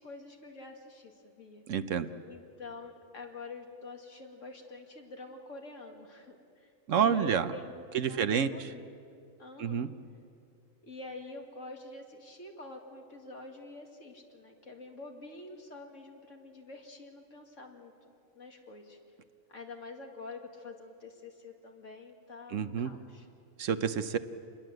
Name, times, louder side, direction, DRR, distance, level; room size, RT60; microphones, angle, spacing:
voice 1, 0.0-1.6 2.3-6.7 7.0-9.0 9.4-9.9 10.8-17.9 18.3-19.0 19.5-23.3, left 3 dB, 65° left, 2 dB, 2.7 m, -47 dB
voice 2, 1.7-2.1 6.9-7.5 7.9-8.5 9.6-9.9 22.5-22.9 23.6-24.2, right 7 dB, 70° right, 11 dB, 1.2 m, -28 dB
27.5 x 21.0 x 7.8 m, 2.5 s
omnidirectional pair, 1.4 m